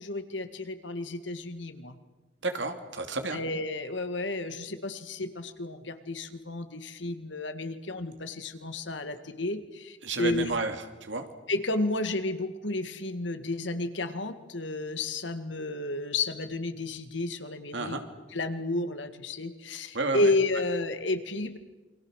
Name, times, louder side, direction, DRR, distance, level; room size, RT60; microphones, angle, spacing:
voice 1, 0.0-2.0 3.3-10.5 11.5-18.0 18.3-21.6, left 2 dB, 80° left, 9 dB, 1.9 m, -31 dB
voice 2, 2.4-3.4 10.0-11.2 17.7-18.0 19.9-20.3, right 3 dB, 80° right, 6 dB, 2.8 m, -31 dB
29.0 x 24.0 x 6.5 m, 1.2 s
head